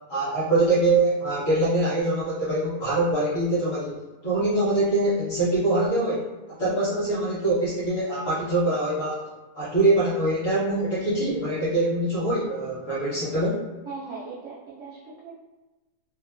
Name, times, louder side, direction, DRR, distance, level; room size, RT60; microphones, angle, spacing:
voice 1, 0.1-6.2 6.6-9.3 9.5-13.6, right 2 dB, 45° left, -9 dB, 1.0 m, -24 dB
voice 2, 13.9-15.3, right 4 dB, 85° right, -6 dB, 0.6 m, -38 dB
2.9 x 2.2 x 2.4 m, 1.1 s
omnidirectional pair, 1.9 m